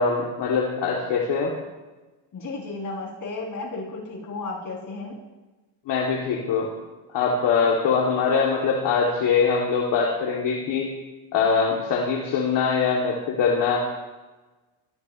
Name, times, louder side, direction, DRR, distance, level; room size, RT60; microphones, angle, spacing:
voice 1, 0.0-1.5 5.9-6.7 7.1-10.9 11.3-13.8, left 5 dB, 70° left, -3 dB, 2.9 m, -23 dB
voice 2, 2.3-5.2, left 3 dB, 45° left, -3 dB, 7.8 m, -33 dB
23.5 x 19.0 x 3.2 m, 1.2 s
cardioid pair, 105°, 44 cm